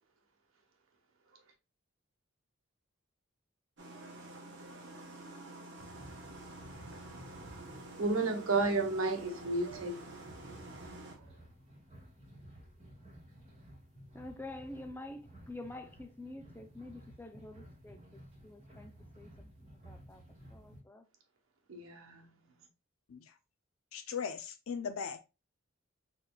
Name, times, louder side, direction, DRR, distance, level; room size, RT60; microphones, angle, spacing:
sound 1, 3.8-11.2, right 2 dB, 60° right, 1.0 m, -49 dB
sound 2, 5.8-20.8, equal, 30° right, 1.8 m, -54 dB
voice 1, 8.0-10.5 11.1-11.4 21.7-22.6, right 3 dB, 85° right, 1.1 m, -34 dB
voice 2, 14.1-20.2 20.5-21.0, left 2 dB, 10° left, 0.4 m, -48 dB
voice 3, 23.9-25.2, left 6 dB, 90° left, 0.5 m, -38 dB
4.2 x 3.9 x 2.3 m
head